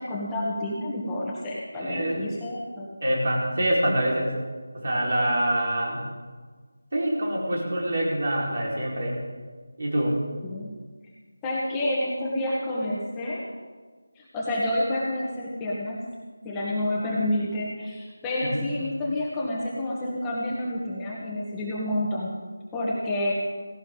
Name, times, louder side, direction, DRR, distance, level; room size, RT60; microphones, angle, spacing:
voice 1, 0.0-2.9 10.4-10.7 11.4-13.4 14.1-16.0 16.4-22.3 22.7-23.3, left 1 dB, 10° left, -6 dB, 1.7 m, -29 dB
voice 2, 1.7-2.2 3.0-4.3 4.7-6.0 6.9-9.2 9.8-10.2 18.4-18.7, right 1 dB, 55° right, -3 dB, 5.0 m, -25 dB
17.0 x 17.0 x 4.0 m, 1.5 s
figure-of-eight pair, 165°, 0 cm